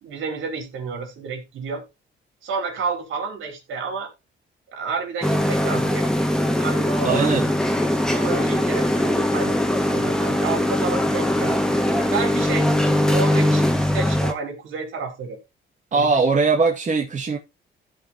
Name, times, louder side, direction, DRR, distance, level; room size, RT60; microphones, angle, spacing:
voice 1, 0.0-1.8 2.4-4.1 4.7-6.1 6.6-7.3 8.1-11.6 12.1-12.7 13.0-15.4 15.9-16.2, right 4 dB, 80° right, 4.4 m, -30 dB
sound 1, 5.2-14.3, left 1 dB, 5° left, 1.9 m, -21 dB
voice 2, 7.0-7.5 15.9-17.4, right 4 dB, 40° right, 2.3 m, -20 dB
16.0 x 5.8 x 2.9 m
cardioid pair, 90°, 20 cm